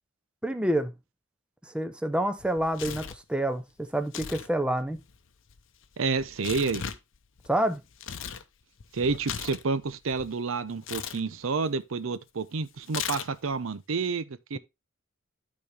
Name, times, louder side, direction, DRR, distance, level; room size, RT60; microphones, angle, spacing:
voice 1, 0.4-0.9 1.7-5.0 7.5-7.8, right 1 dB, 5° right, 0.7 m, -28 dB
Tearing, 2.4-3.2 4.0-4.5 4.8-8.4 8.8-10.3 10.8-11.2 12.9-13.5, left 8 dB, 65° left, 0.7 m, -38 dB
voice 2, 6.0-6.8 8.9-14.6, right 4 dB, 75° right, 0.6 m, -29 dB
12.5 x 4.2 x 3.3 m
head